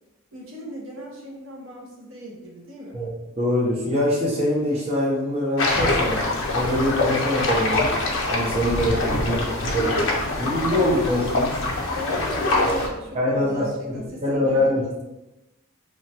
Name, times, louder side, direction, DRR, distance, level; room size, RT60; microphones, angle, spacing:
voice 1, 0.3-3.0 9.2-9.4 9.7-10.2 11.9-15.0, left 1 dB, 65° right, -2 dB, 0.7 m, -37 dB
voice 2, 3.4-6.2 6.5-7.9 8.3-9.9 10.4-11.5 12.6-12.7 13.1-14.8, left 1 dB, 30° right, -5 dB, 0.4 m, -24 dB
sound 1, 5.6-12.9, left 2 dB, 65° left, 0.5 m, -24 dB
3.0 x 2.2 x 2.7 m, 0.98 s
head